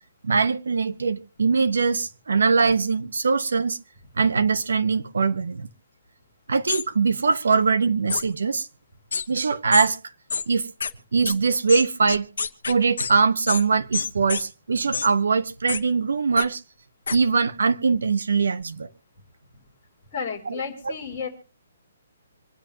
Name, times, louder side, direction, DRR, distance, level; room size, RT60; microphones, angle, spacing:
voice 1, 0.2-3.8 4.2-5.7 6.5-8.7 9.3-10.0 10.5-10.7 11.1-12.3 12.7-16.6 17.1-18.9 20.5-20.6, right 5 dB, 80° right, 1.0 m, -22 dB
sound 1, 6.7-6.8 8.1-8.2 9.1-9.3 9.7-9.9 10.3-10.5 10.8-10.9 11.3-11.4 11.7-13.1 13.5-13.6 13.9-14.4 14.9-15.1 15.7-15.8 16.4-16.5 17.1-17.2, left 6 dB, 60° left, 1.1 m, -27 dB
voice 2, 20.1-21.3, left 6 dB, 10° left, 3.5 m, -32 dB
26.0 x 10.0 x 2.8 m
hypercardioid pair, 180°, 0 cm